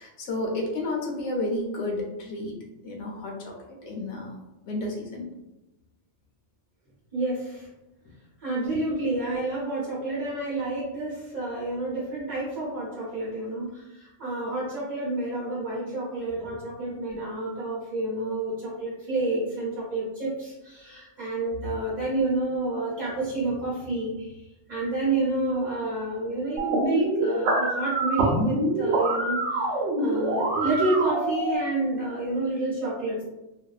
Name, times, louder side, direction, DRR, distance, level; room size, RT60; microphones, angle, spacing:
voice 1, 0.0-2.6 2.8-3.5 3.8-4.4 4.7-5.3 21.6-21.8, left 2 dB, 90° left, -1 dB, 0.9 m, -31 dB
voice 2, 7.1-7.7 8.4-24.4 24.7-33.2, right 2 dB, 50° right, -7 dB, 0.7 m, -29 dB
sound 1, 26.6-31.6, right 1 dB, 85° right, 0.9 m, -25 dB
2.5 x 2.2 x 2.3 m, 0.98 s
omnidirectional pair, 1.2 m